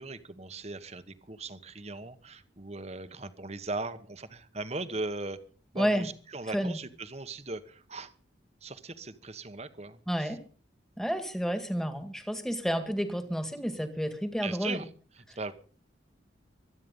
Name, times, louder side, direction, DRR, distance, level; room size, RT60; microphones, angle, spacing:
voice 1, 0.0-5.4 5.7-8.1 8.6-10.4 14.4-14.9 15.2-15.5, right 3 dB, 35° right, 11 dB, 1.3 m, -39 dB
voice 2, 5.8-6.1 6.5-6.8 10.1-10.4 11.0-14.8, equal, 5° left, 8 dB, 2.0 m, -30 dB
24.0 x 9.7 x 5.4 m, 0.40 s
head